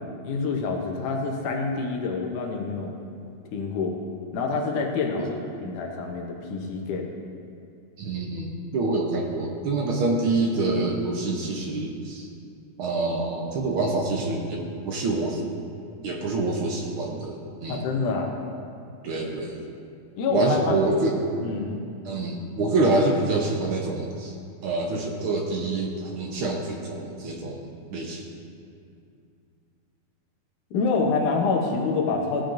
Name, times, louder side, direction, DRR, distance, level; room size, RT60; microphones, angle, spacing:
voice 1, 0.0-3.0 3.5-4.0 4.3-7.1 17.7-18.3 20.2-20.7 21.4-21.8 30.7-32.4, left 4 dB, 85° left, 0 dB, 2.4 m, -27 dB
voice 2, 8.0-8.5 8.7-12.3 12.8-15.5 16.0-17.8 19.0-19.6 20.3-21.2 22.0-24.3 24.6-27.6 27.9-28.2, right 2 dB, 75° right, 0 dB, 1.2 m, -26 dB
15.5 x 8.8 x 2.6 m, 2.4 s
omnidirectional pair, 3.5 m